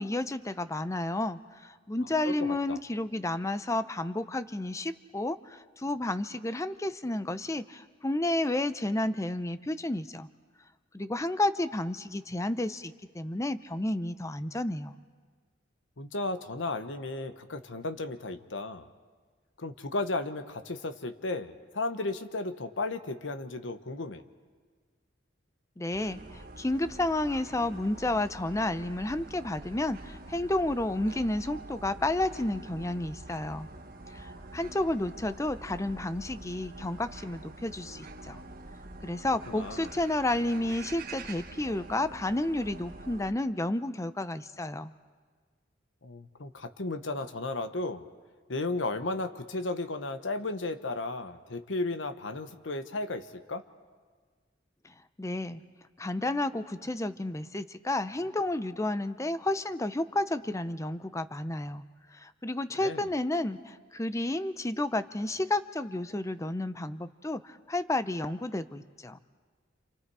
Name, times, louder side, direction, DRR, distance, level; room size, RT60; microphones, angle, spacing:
voice 1, 0.0-10.3 10.9-15.0 25.8-33.7 34.1-38.4 39.0-44.9 55.2-55.6 56.0-61.8 62.2-69.2, left 1 dB, 15° left, 13 dB, 0.6 m, -31 dB
voice 2, 2.2-2.8 16.0-18.9 19.6-24.2 39.5-39.9 46.0-48.1 48.5-53.6 62.8-63.1, left 2 dB, 75° left, 9 dB, 1.1 m, -34 dB
sound 1, 25.9-43.3, right 2 dB, 50° right, 1.3 m, -46 dB
29.0 x 27.5 x 4.8 m, 1.5 s
head